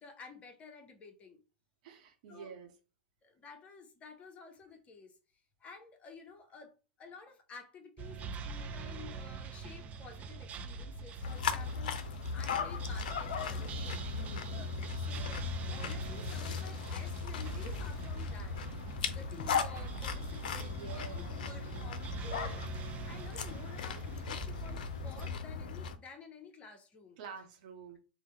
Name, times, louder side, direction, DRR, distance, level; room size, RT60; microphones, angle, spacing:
voice 1, 0.0-1.4 2.3-2.6 3.2-5.2 5.6-6.7 7.0-14.0 14.5-14.7 15.0-18.6 19.1-22.6 23.0-27.2, left 4 dB, 25° left, 0.8 m, -52 dB
voice 2, 1.8-2.7 14.1-14.7 20.6-21.5 27.2-28.0, right 6 dB, 55° right, 0.9 m, -49 dB
sound 1, 8.0-25.4, right 4 dB, 30° right, 0.4 m, -44 dB
sound 2, 11.2-26.0, left 6 dB, 65° left, 0.4 m, -38 dB
4.7 x 2.1 x 2.8 m
figure-of-eight pair, 95°, 5 cm